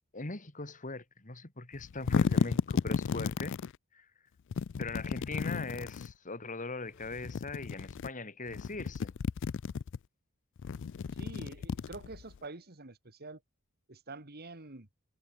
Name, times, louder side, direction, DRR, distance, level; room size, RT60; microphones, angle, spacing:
voice 1, 0.1-3.6 3.9-4.1 4.8-9.1, left 3 dB, 35° left, 2.4 m, -40 dB
sound 1, 1.7-3.7 4.5-6.1 7.0-8.1 8.5-10.0 10.6-12.4, left 6 dB, 55° left, 0.4 m, -33 dB
voice 2, 11.1-13.4 13.9-14.9, right 3 dB, 45° right, 2.2 m, -46 dB
head